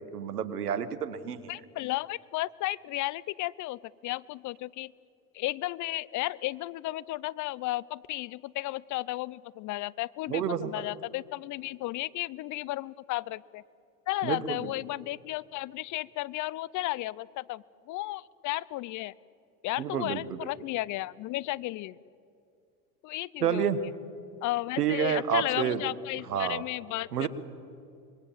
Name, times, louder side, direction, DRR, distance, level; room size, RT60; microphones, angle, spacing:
voice 1, 0.0-1.5 10.3-10.9 14.2-14.7 19.8-20.5 23.4-23.8 24.8-25.8 26.3-26.6 27.1-27.3, right 8 dB, 90° right, 14 dB, 1.5 m, -29 dB
voice 2, 1.5-4.9 5.3-13.6 14.1-19.1 19.6-22.0 23.0-23.9 24.4-27.3, left 18 dB, 40° left, 23 dB, 0.6 m, -34 dB
26.0 x 22.5 x 7.4 m, 2.5 s
hypercardioid pair, 85°, 45 cm